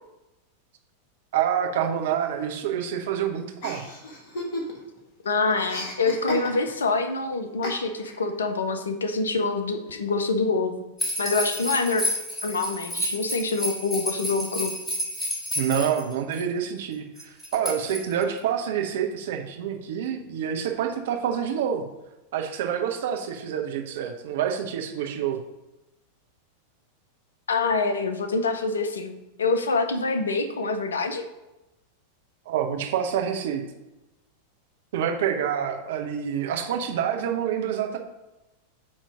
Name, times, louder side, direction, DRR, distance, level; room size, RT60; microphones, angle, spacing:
voice 1, 1.3-3.8 15.5-21.8 22.3-25.4 32.5-33.6 34.9-38.0, right 8 dB, 55° right, 4 dB, 0.8 m, -27 dB
Chuckle chortle, 3.6-5.0 5.2-6.9 7.6-8.2, left 1 dB, 50° left, 1.6 m, -34 dB
voice 2, 5.2-10.7 11.2-12.0 12.4-14.7 27.5-29.1 29.4-31.2, left 3 dB, 70° left, 9 dB, 0.7 m, -25 dB
sound 1, 11.0-16.4 17.2-18.4, equal, 15° left, 2.3 m, -30 dB
8.6 x 3.1 x 5.1 m, 0.98 s
figure-of-eight pair, 90°, 0 cm